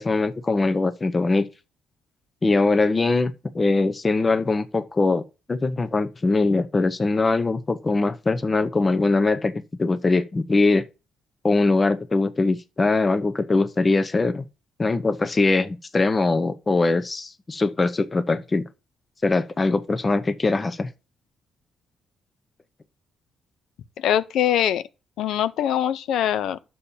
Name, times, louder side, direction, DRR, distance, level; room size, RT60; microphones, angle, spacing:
voice 1, 0.0-1.5 2.4-9.5 9.8-10.9 11.4-14.4 14.8-18.6 19.2-20.9, left 3 dB, 25° left, 0.7 m, -22 dB
voice 2, 24.0-24.8 25.2-26.6, left 10 dB, 80° left, 0.6 m, -22 dB
11.5 x 7.0 x 2.7 m
cardioid pair, 90°, 0 cm